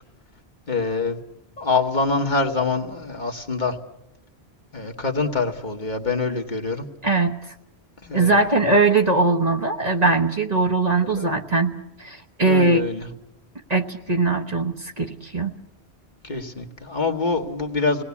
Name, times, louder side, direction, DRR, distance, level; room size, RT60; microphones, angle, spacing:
voice 1, 0.7-1.2 1.6-3.8 4.7-6.9 8.0-8.4 11.1-11.3 12.5-13.1 16.2-18.0, left 4 dB, 45° left, 2 dB, 1.6 m, -25 dB
voice 2, 7.0-7.5 8.1-11.7 12.0-12.9 13.7-15.5, right 3 dB, 40° right, 3 dB, 1.2 m, -20 dB
28.5 x 19.0 x 8.4 m, 0.88 s
omnidirectional pair, 1.1 m